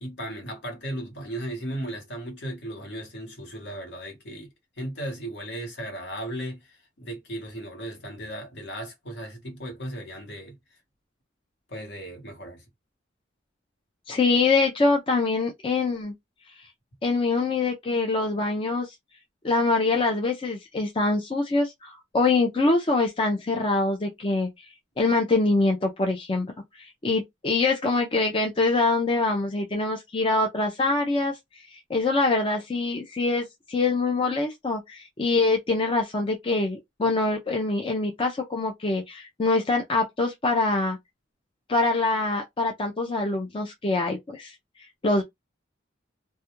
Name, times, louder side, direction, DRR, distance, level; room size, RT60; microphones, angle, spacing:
voice 1, 0.0-10.6 11.7-12.6, right 1 dB, 60° left, 1.0 m, -36 dB
voice 2, 14.1-16.1 17.0-18.9 19.4-24.7 25.0-26.5 26.7-41.0 41.7-44.5 45.0-45.2, left 3 dB, 30° left, 0.4 m, -24 dB
2.3 x 2.1 x 2.9 m
head